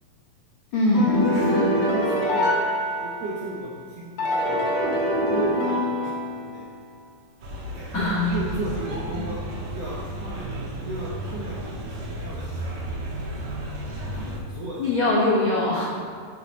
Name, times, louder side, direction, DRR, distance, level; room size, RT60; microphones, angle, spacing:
voice 1, 0.7-1.7 7.9-8.3 9.2-9.3 14.8-15.8, left 2 dB, 85° left, -6 dB, 1.1 m, -22 dB
sound 1, 0.9-3.6 4.2-6.7, left 1 dB, 50° left, 2.6 m, -24 dB
voice 2, 1.2-2.6 3.0-6.6 7.7-9.4 9.7-10.5 10.8-13.0 14.1-14.8, right 2 dB, 75° right, -5 dB, 1.5 m, -35 dB
sound 2, 7.4-14.4, right 1 dB, 60° right, 2.2 m, -33 dB
7.8 x 7.0 x 4.1 m, 2.1 s
omnidirectional pair, 4.2 m